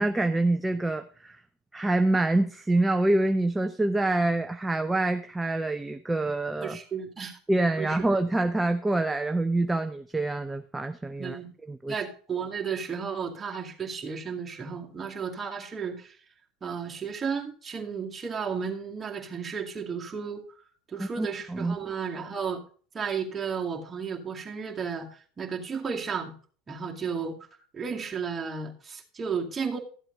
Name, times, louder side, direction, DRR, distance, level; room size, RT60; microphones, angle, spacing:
voice 1, 0.0-1.4 1.7-6.8 7.5-11.4 11.7-11.9 21.0-21.8, right 2 dB, 10° right, 7 dB, 0.7 m, -26 dB
voice 2, 6.6-7.4 7.8-8.0 11.2-11.5 11.9-16.2 16.6-20.5 20.9-22.6 22.9-26.3 26.7-27.4 27.7-29.8, right 6 dB, 25° right, 1 dB, 2.3 m, -33 dB
13.5 x 7.7 x 3.9 m, 0.42 s
hypercardioid pair, 90°, 0 cm